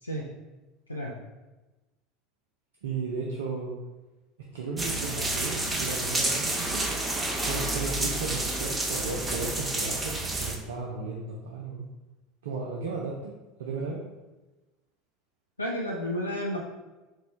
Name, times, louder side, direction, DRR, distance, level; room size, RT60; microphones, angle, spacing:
voice 1, 2.8-3.7 4.5-6.9 7.5-11.8 12.4-14.0, right 4 dB, 70° right, -2 dB, 0.5 m, -35 dB
sound 1, 4.8-10.6, right 2 dB, 15° right, 0.7 m, -29 dB
voice 2, 15.6-16.6, equal, 90° left, -2 dB, 0.4 m, -31 dB
4.2 x 2.3 x 4.3 m, 1.1 s
figure-of-eight pair, 70°, 0 cm